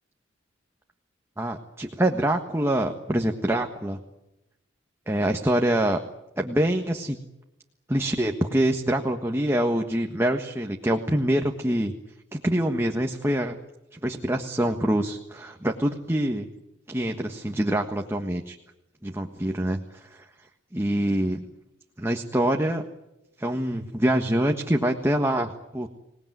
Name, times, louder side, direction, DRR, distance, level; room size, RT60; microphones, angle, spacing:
voice 1, 1.4-4.0 5.1-6.0 6.4-7.2 7.9-11.9 12.3-13.6 13.9-16.5 16.9-18.6 19.0-20.2 20.7-21.4 22.0-22.8 23.4-25.9, right 1 dB, 15° right, 3 dB, 1.5 m, -25 dB
26.5 x 19.5 x 9.5 m, 0.92 s
head